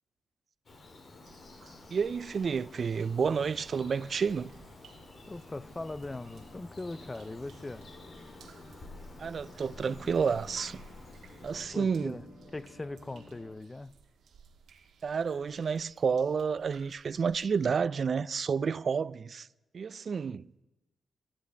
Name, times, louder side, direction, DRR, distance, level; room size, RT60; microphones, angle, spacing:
Bird vocalization bird call bird song, 0.7-11.6, left 2 dB, 45° left, 2.2 m, -51 dB
sound 1, 0.8-13.5, left 1 dB, 65° left, 5.2 m, -54 dB
sound 2, 1.2-17.8, right 6 dB, 80° right, 1.4 m, -60 dB
voice 1, 1.9-4.5 9.2-10.8 11.4-12.2 15.0-19.5 19.7-20.5, right 6 dB, 50° right, 0.4 m, -30 dB
voice 2, 5.3-7.8 11.7-12.2 12.5-13.9, left 2 dB, 20° left, 0.4 m, -40 dB
11.5 x 8.3 x 8.7 m
cardioid pair, 120°, 0 cm